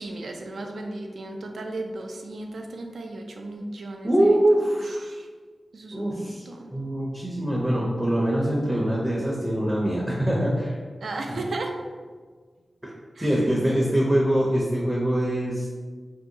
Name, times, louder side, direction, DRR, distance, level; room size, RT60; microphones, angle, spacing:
voice 1, 0.0-4.4 4.8-5.3 5.7-6.7 11.0-11.7 13.2-13.5, right 2 dB, 80° right, 3 dB, 0.4 m, -35 dB
voice 2, 4.0-5.0 5.9-6.4 6.7-10.8 12.8-12.9 13.2-15.7, right 1 dB, 10° right, -5 dB, 0.5 m, -23 dB
3.0 x 2.7 x 2.6 m, 1.5 s
wide cardioid pair, 90°, 0 cm